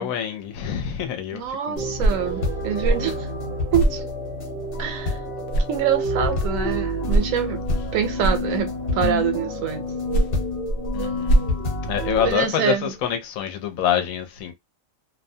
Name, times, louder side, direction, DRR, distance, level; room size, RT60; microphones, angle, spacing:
voice 1, 0.0-2.0 10.9-11.4 11.9-14.5, left 9 dB, 85° left, 1.0 m, -26 dB
voice 2, 1.3-3.3 3.7-4.0 4.8-5.2 5.7-7.6 7.9-9.8 12.2-12.8, right 8 dB, 75° right, 1.0 m, -25 dB
sound 1, 1.8-12.3, left 2 dB, 45° left, 1.0 m, -28 dB
sound 2, 1.8-13.1, right 4 dB, 60° right, 0.6 m, -39 dB
sound 3, 1.9-5.2 5.5-9.0 9.8-12.5, right 1 dB, 60° left, 0.7 m, -26 dB
2.5 x 2.1 x 2.6 m
omnidirectional pair, 1.4 m